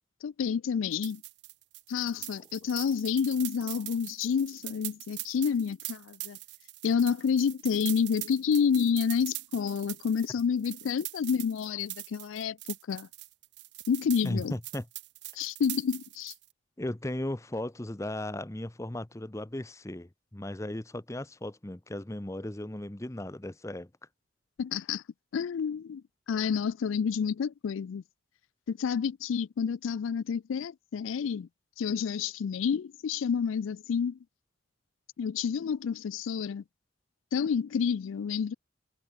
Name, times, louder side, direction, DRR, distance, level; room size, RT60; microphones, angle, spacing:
voice 1, 0.2-1.2 1.9-6.4 6.8-12.6 12.9-13.1 13.9-14.5 15.4-16.3 24.6-25.0 25.3-26.0 26.3-28.0 28.7-31.5 31.8-34.2 35.2-36.6 37.3-38.5, left 6 dB, 90° left, 0.4 m, -29 dB
sound 1, 0.9-16.5, right 21 dB, 60° right, 0.4 m, -42 dB
voice 2, 14.2-14.9 16.8-23.9, left 1 dB, 15° left, 0.7 m, -36 dB
head